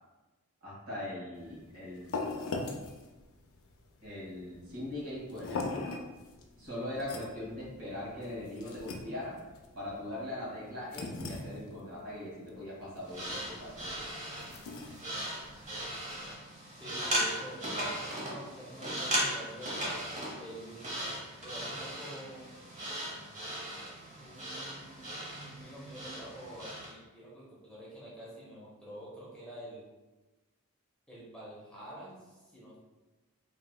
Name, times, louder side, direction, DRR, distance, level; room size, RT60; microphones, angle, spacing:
voice 1, 0.6-2.2 4.0-5.8 6.6-9.4 9.7-14.1, left 1 dB, 75° right, -7 dB, 1.5 m, -40 dB
sound 1, 1.4-16.3, left 3 dB, 65° left, 0.4 m, -42 dB
sound 2, 13.0-26.9, right 1 dB, 35° right, 0.7 m, -37 dB
voice 2, 16.8-17.6 18.2-19.8 20.4-21.0 21.4-22.5 24.2-29.9 31.1-32.8, right 1 dB, 5° left, -7 dB, 0.6 m, -47 dB
3.0 x 2.8 x 2.2 m, 1.1 s
head